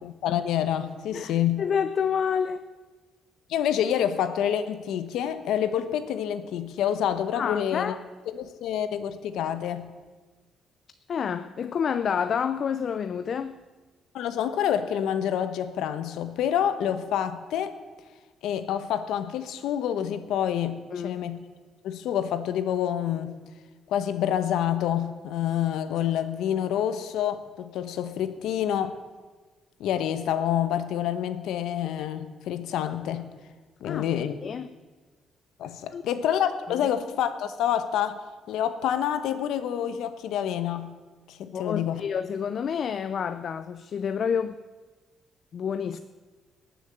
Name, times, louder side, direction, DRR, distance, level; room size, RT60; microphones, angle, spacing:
voice 1, 0.0-1.6 3.5-8.0 8.3-9.9 14.1-17.7 18.4-21.4 21.8-23.4 23.9-29.0 29.8-33.3 33.8-34.4 35.6-38.2 38.5-40.9 41.3-42.0, left 10 dB, 90° left, 11 dB, 1.0 m, -27 dB
voice 2, 1.1-2.6 7.3-8.0 11.1-13.6 20.9-21.2 33.8-34.7 35.9-36.0 36.7-36.9 41.5-44.6 45.5-46.0, left 7 dB, 40° left, 12 dB, 0.4 m, -29 dB
19.0 x 7.2 x 7.6 m, 1.3 s
cardioid pair, 175°, 0 cm